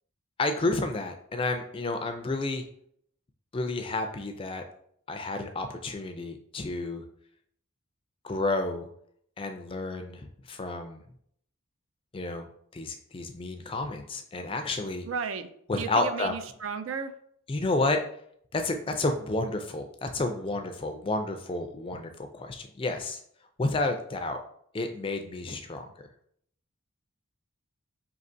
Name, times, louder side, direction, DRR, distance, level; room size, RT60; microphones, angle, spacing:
voice 1, 0.4-2.6 3.5-4.6 5.1-7.0 8.2-8.9 9.4-11.0 12.1-12.5 12.7-15.1 15.7-16.3 17.5-18.0 18.5-23.2 23.6-24.4 24.7-25.9, left 2 dB, 25° left, 6 dB, 0.4 m, -30 dB
voice 2, 15.0-15.5 15.8-17.1, right 6 dB, 70° right, 10 dB, 0.4 m, -33 dB
5.4 x 2.8 x 2.6 m, 0.67 s
head